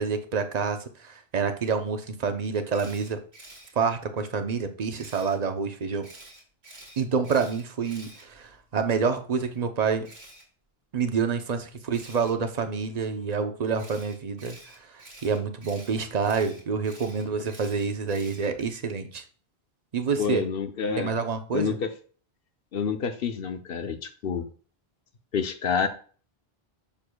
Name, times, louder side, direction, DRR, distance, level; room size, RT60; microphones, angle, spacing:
voice 1, 0.0-3.2 3.8-6.1 7.0-10.1 10.9-14.6 14.9-19.2 19.9-20.4 21.0-21.8, right 5 dB, 45° right, 7 dB, 0.8 m, -28 dB
Camera, 2.7-3.7 5.0-5.4 6.0-8.8 10.0-10.4 11.9-12.3 13.8-18.7, right 2 dB, 90° right, 2.7 m, -48 dB
voice 2, 20.2-21.2 21.5-21.9 22.7-24.5 25.3-25.9, left 6 dB, 65° left, 9 dB, 1.0 m, -28 dB
10.5 x 6.7 x 2.3 m, 0.42 s
omnidirectional pair, 1.0 m